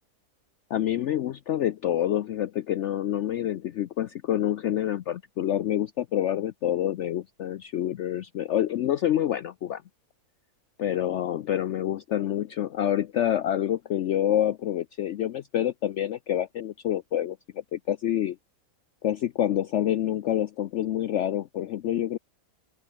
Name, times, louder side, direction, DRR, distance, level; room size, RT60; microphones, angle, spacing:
voice 1, 0.7-9.8 10.8-17.4 17.7-18.4 19.0-22.2, left 11 dB, 65° left, 0.8 m, -27 dB
open air
omnidirectional pair, 1.6 m